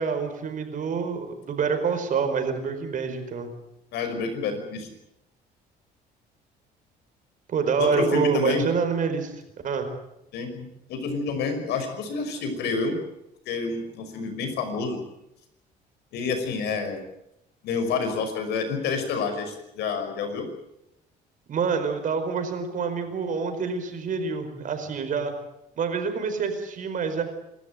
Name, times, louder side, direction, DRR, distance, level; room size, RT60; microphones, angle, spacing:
voice 1, 0.0-3.5 7.5-9.3 9.6-9.9 21.5-25.3 25.8-27.2, right 5 dB, 50° right, 7 dB, 4.9 m, -27 dB
voice 2, 3.9-4.9 7.8-8.7 10.3-13.0 13.5-15.0 16.1-17.0 17.6-20.5, left 4 dB, 80° left, 7 dB, 5.8 m, -28 dB
27.5 x 13.5 x 9.2 m, 0.84 s
cardioid pair, 110°, 17 cm